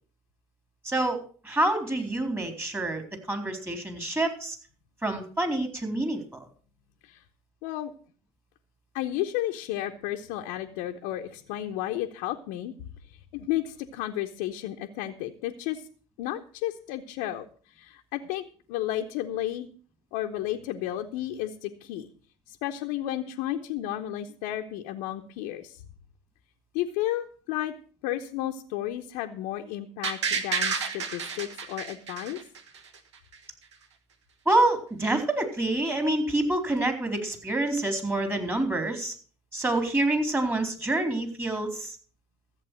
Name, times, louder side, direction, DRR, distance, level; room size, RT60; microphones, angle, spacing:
voice 1, 0.8-1.2 1.4-3.0 3.3-4.6 5.0-6.5 34.5-39.1 39.5-42.0, right 2 dB, 15° right, 5 dB, 4.0 m, -27 dB
voice 2, 7.6-7.9 8.9-12.7 13.1-15.9 16.2-18.4 18.7-19.7 20.1-22.1 22.5-25.8 26.7-27.7 28.0-32.4, left 13 dB, 70° left, 3 dB, 0.9 m, -32 dB
sound 1, 30.0-33.0 33.3-33.4, right 5 dB, 90° right, 1.3 m, -30 dB
14.0 x 8.1 x 6.3 m, 0.42 s
hypercardioid pair, 70°, 14 cm